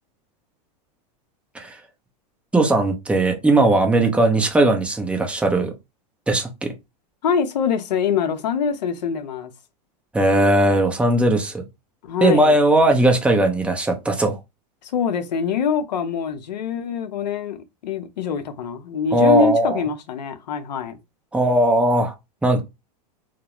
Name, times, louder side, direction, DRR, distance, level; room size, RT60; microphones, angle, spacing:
voice 1, 2.5-5.7 6.3-6.7 10.1-11.6 12.2-14.4 19.1-19.8 21.3-22.1 22.4-22.6, right 1 dB, 5° right, 0.6 m, -18 dB
voice 2, 7.2-9.5 12.0-12.6 14.8-21.0, left 6 dB, 85° left, 0.6 m, -24 dB
2.3 x 2.0 x 2.9 m
hypercardioid pair, 115°, 21 cm